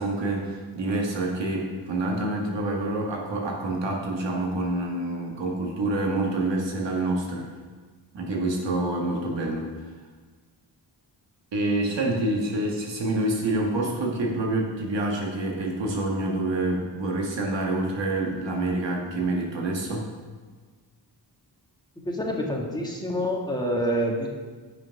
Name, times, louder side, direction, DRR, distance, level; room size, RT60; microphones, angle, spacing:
voice 1, 0.0-7.5 8.1-9.7 11.5-20.1, right 2 dB, 85° right, -1 dB, 1.8 m, -27 dB
voice 2, 21.9-24.3, equal, 10° left, -1 dB, 1.6 m, -27 dB
8.6 x 6.1 x 5.8 m, 1.4 s
cardioid pair, 85°, 42 cm